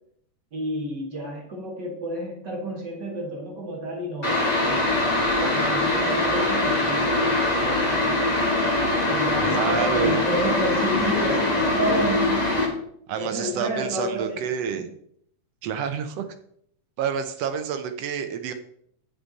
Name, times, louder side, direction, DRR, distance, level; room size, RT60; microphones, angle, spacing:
voice 1, 0.5-5.1 5.4-8.4 9.0-12.4 13.2-14.4 14.7-14.8, right 1 dB, 40° right, -1 dB, 1.9 m, -30 dB
sound 1, 4.2-12.7, left 2 dB, 20° left, 1.0 m, -23 dB
voice 2, 9.4-10.2 13.1-14.9 15.6-16.3 17.0-18.5, right 7 dB, 75° right, 8 dB, 1.5 m, -28 dB
8.9 x 6.9 x 4.0 m, 0.68 s
omnidirectional pair, 3.6 m